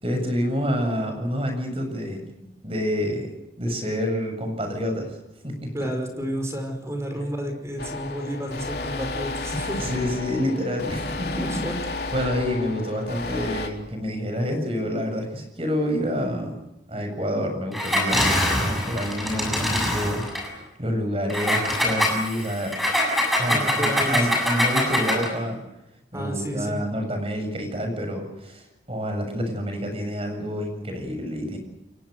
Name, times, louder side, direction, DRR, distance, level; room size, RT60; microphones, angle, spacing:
voice 1, 0.0-3.3 3.6-5.2 5.4-5.7 9.8-11.4 12.1-16.6 16.9-20.2 20.8-22.7 23.4-25.6 26.1-31.6, equal, 35° right, 5 dB, 7.3 m, -28 dB
voice 2, 5.7-9.8 11.4-11.8 23.5-24.3 26.1-26.8, equal, 15° right, 5 dB, 5.4 m, -31 dB
sound 1, 7.8-13.7, left 3 dB, 60° left, 4.0 m, -32 dB
Engine, 17.7-20.5 21.3-25.4, left 1 dB, ahead, 7.3 m, -24 dB
29.5 x 23.0 x 6.7 m, 0.88 s
head